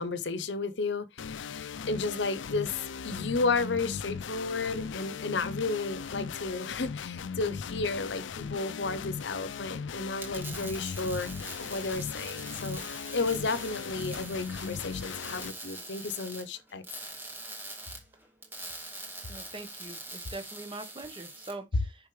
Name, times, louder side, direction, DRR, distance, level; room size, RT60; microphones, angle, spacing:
voice 1, 0.0-2.8 3.0-11.3 11.6-12.8 13.1-16.8, left 3 dB, 75° left, 0.8 m, -32 dB
sound 1, 1.2-15.5, left 6 dB, 90° left, 0.5 m, -38 dB
sound 2, 10.1-21.5, right 2 dB, 10° right, 2.1 m, -43 dB
voice 2, 19.3-22.1, right 2 dB, 25° right, 1.1 m, -43 dB
6.8 x 5.4 x 3.2 m
head